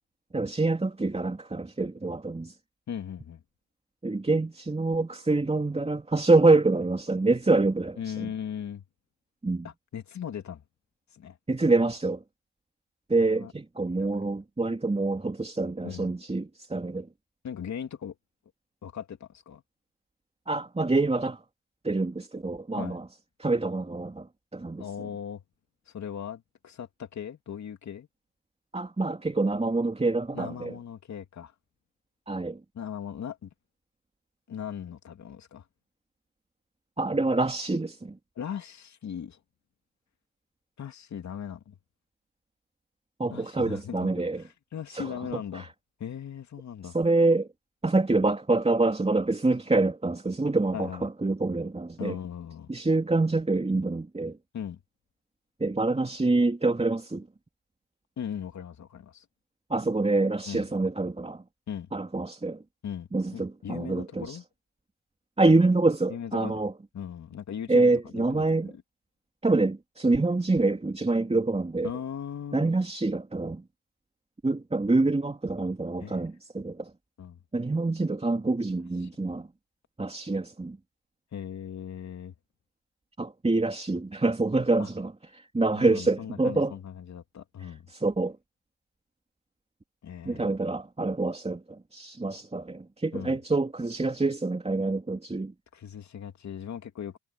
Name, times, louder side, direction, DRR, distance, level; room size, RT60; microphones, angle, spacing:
voice 1, 0.3-2.5 4.0-8.3 9.4-9.7 11.5-12.2 13.1-17.1 20.5-21.4 21.8-23.1 23.4-24.8 28.7-30.7 32.3-32.6 37.0-38.2 43.2-44.4 44.9-45.7 46.8-47.5 47.8-52.2 52.7-54.4 55.6-57.3 59.7-61.4 61.9-62.6 63.1-64.4 65.4-66.7 67.7-68.7 69.4-71.9 72.5-73.6 74.4-76.9 77.5-79.5 80.0-80.8 83.2-86.7 87.6-88.4 90.2-95.5, right 3 dB, 20° right, 3.1 m, -26 dB
voice 2, 2.9-3.4 8.0-8.8 9.6-10.6 11.1-11.4 13.3-13.5 13.9-14.2 15.8-16.1 17.4-18.2 18.8-19.6 22.7-23.0 24.8-25.4 25.9-28.1 30.3-31.5 32.7-33.5 34.5-35.6 38.4-39.4 40.8-41.8 43.3-45.7 46.0-46.9 50.7-51.1 52.0-52.7 54.5-54.8 58.2-59.3 60.5-60.7 61.7-61.9 62.8-64.4 66.1-66.6 66.9-68.7 71.8-72.7 76.0-76.2 77.2-77.4 79.0-79.1 81.3-82.3 84.8-84.9 85.7-87.9 90.0-90.5 93.1-93.4 95.7-97.2, left 8 dB, 65° left, 2.6 m, -38 dB
supercardioid pair, 60°, 30 cm